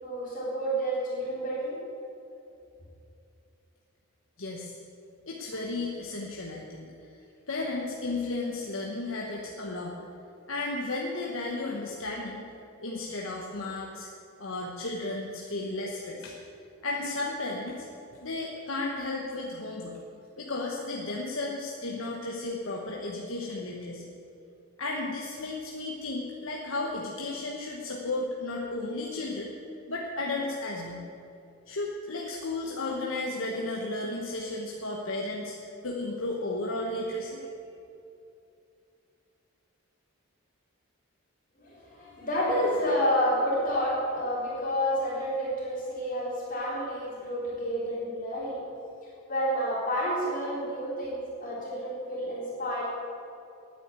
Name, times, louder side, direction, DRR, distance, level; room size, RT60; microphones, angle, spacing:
voice 1, 0.0-1.8 41.6-48.6 49.3-52.8, equal, 40° left, -6 dB, 3.5 m, -29 dB
voice 2, 4.4-4.8 5.3-6.9 7.5-10.0 10.5-12.5 12.8-14.1 14.4-16.3 16.8-17.8 18.2-20.0 20.4-24.0 24.8-29.5 29.9-31.0 31.7-37.4, left 2 dB, 65° left, -2 dB, 1.2 m, -34 dB
9.7 x 9.6 x 8.3 m, 2.6 s
head